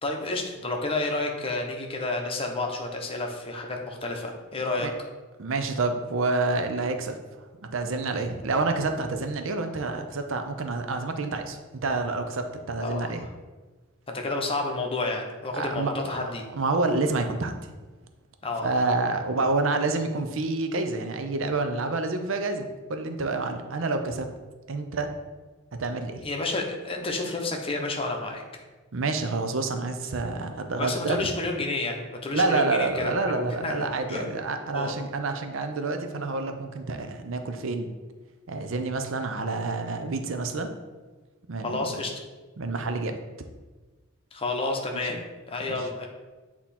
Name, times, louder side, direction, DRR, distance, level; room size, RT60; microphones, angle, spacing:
voice 1, 0.0-4.9 12.8-13.3 14.1-16.5 18.4-18.9 26.2-28.4 30.8-34.3 34.7-35.0 41.6-42.2 44.3-46.1, left 2 dB, 25° left, 1 dB, 0.8 m, -30 dB
voice 2, 5.4-7.2 7.6-13.3 15.5-16.2 16.5-17.7 18.6-24.3 24.7-25.1 25.8-26.2 28.9-31.3 32.3-37.9 38.5-40.7 41.5-42.0 42.6-43.2 45.1-45.2, right 3 dB, 65° right, 6 dB, 0.6 m, -28 dB
7.7 x 2.9 x 4.2 m, 1.3 s
head